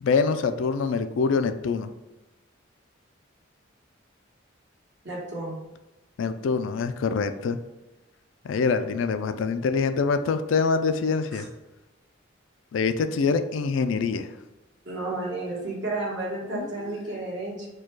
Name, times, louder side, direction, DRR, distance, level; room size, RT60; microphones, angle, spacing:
voice 1, 0.0-1.9 6.2-7.6 8.4-11.5 12.7-14.3 16.5-16.7, left 5 dB, 75° left, 10 dB, 0.3 m, -25 dB
voice 2, 5.0-5.6 11.3-11.4 14.8-17.7, right 2 dB, 60° right, -4 dB, 1.5 m, -32 dB
4.4 x 2.3 x 4.5 m, 1.1 s
head